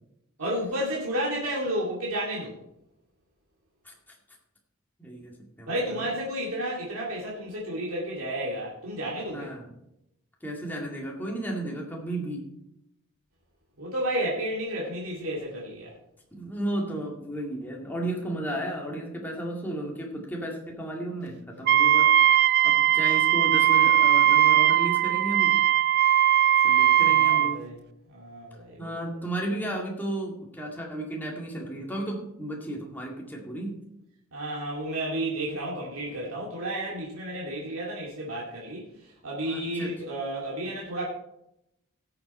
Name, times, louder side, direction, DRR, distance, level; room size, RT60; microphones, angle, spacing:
voice 1, 0.4-2.6 5.7-9.5 13.8-15.9 27.0-27.7 28.1-29.2 34.3-41.1, right 1 dB, 85° right, -4 dB, 2.4 m, -32 dB
voice 2, 5.0-6.0 9.3-9.8 10.4-12.5 16.3-25.6 26.6-27.6 28.8-33.8 39.4-39.9, right 1 dB, 10° left, -1 dB, 2.0 m, -34 dB
Wind instrument woodwind instrument, 21.7-27.6, right 11 dB, 50° right, 0.3 m, -20 dB
17.0 x 7.0 x 4.2 m, 0.83 s
head